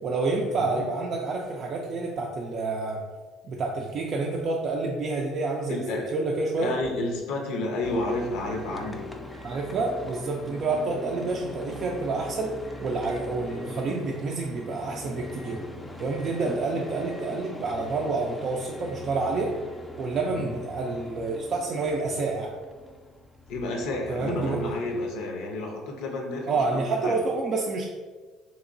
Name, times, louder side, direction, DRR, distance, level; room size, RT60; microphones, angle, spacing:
voice 1, 0.0-3.0 3.4-5.8 6.1-6.7 9.4-12.5 12.8-15.6 16.0-19.5 20.0-22.5 24.1-24.6 26.5-27.9, right 3 dB, 55° right, -1 dB, 0.4 m, -28 dB
voice 2, 0.6-0.9 5.7-6.1 6.6-9.1 16.4-16.5 20.3-20.6 23.5-27.2, left 2 dB, 75° left, 2 dB, 0.5 m, -31 dB
sound 1, 7.8-25.1, left 1 dB, 15° left, 0.4 m, -42 dB
2.9 x 2.9 x 2.5 m, 1.4 s
supercardioid pair, 70°, 0 cm